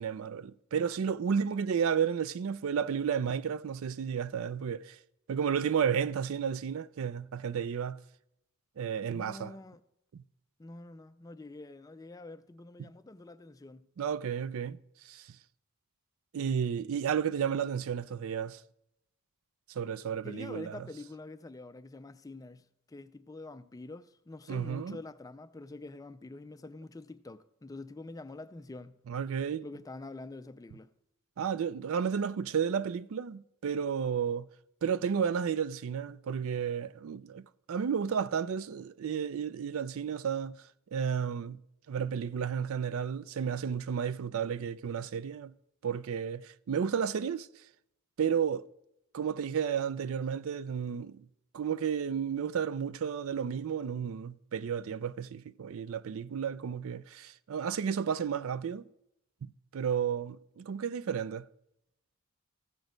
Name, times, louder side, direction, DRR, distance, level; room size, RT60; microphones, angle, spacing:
voice 1, 0.0-5.0 5.3-8.0 8.8-9.6 10.1-10.2 14.0-14.8 15.0-15.4 16.3-18.6 19.7-20.9 24.5-25.0 29.1-29.7 31.4-34.5 34.8-41.6 41.9-45.5 45.8-47.5 48.2-48.6 49.1-51.3 51.5-58.9 59.4-61.5, right 7 dB, 65° right, 0.4 m, -32 dB
voice 2, 9.1-9.8 10.6-13.8 20.2-29.0 29.6-30.9, left 2 dB, 15° left, 0.3 m, -46 dB
14.5 x 6.2 x 5.1 m
head